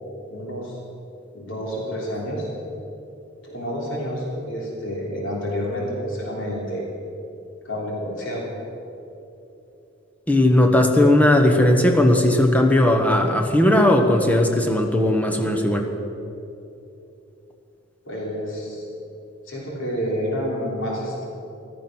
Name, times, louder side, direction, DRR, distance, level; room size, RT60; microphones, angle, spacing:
voice 1, 0.3-0.8 1.3-2.5 3.4-6.8 7.7-8.5 18.1-18.9 19.5-21.3, equal, 75° left, -3 dB, 3.4 m, -29 dB
voice 2, 10.3-15.9, left 1 dB, 10° left, 2 dB, 1.2 m, -17 dB
15.0 x 13.0 x 6.2 m, 2.9 s
head